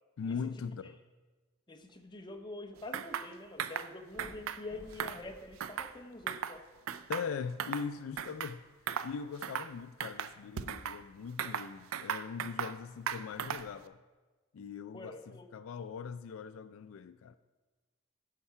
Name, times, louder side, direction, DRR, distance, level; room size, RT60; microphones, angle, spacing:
voice 1, 0.2-1.0 7.1-8.6 9.0-14.0 14.5-15.2 15.5-17.3, left 6 dB, 70° left, 0.3 m, -40 dB
voice 2, 1.7-6.6 14.9-15.5, left 2 dB, 20° left, 0.7 m, -46 dB
sound 1, 1.8-3.3 3.6-3.7 4.1-6.7 7.4-7.5, left 1 dB, 15° right, 1.7 m, -57 dB
sound 2, 2.9-3.3 3.6-3.9 4.2-4.6 4.9-6.0 6.3-6.6 6.9-7.9 8.2-8.5 8.9-9.1 9.4-9.7 10.0-11.0 11.4-12.8 13.1-13.8, right 8 dB, 80° right, 0.4 m, -37 dB
9.8 x 5.8 x 5.5 m
head